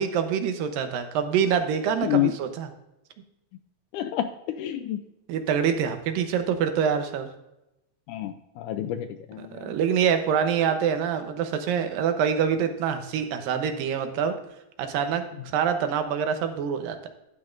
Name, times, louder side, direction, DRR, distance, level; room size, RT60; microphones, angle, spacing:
voice 1, 0.0-2.7 5.3-7.3 9.4-14.4 14.8-17.1, right 7 dB, 80° right, 7 dB, 2.7 m, -25 dB
voice 2, 2.0-2.3 3.9-5.0 8.1-9.7, left 12 dB, 80° left, 9 dB, 1.9 m, -28 dB
12.0 x 8.8 x 2.6 m, 0.89 s
omnidirectional pair, 4.0 m